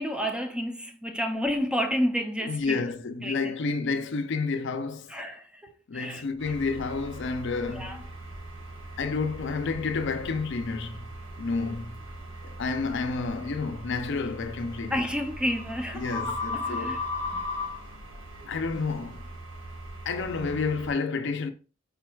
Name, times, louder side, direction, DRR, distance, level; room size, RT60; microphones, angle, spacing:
voice 1, 0.0-2.9 3.2-3.5 5.1-6.2 7.7-8.0 14.9-17.0 17.3-17.5, equal, 5° right, 0.5 m, -31 dB
voice 2, 2.4-5.1 5.9-8.1 9.0-11.1 11.4-12.0 12.4-15.1 15.9-17.0 18.5-19.3 20.0-21.5, left 4 dB, 60° left, 0.5 m, -30 dB
sound 1, 6.4-20.9, left 1 dB, 75° right, 1.1 m, -38 dB
5.1 x 4.5 x 2.3 m
head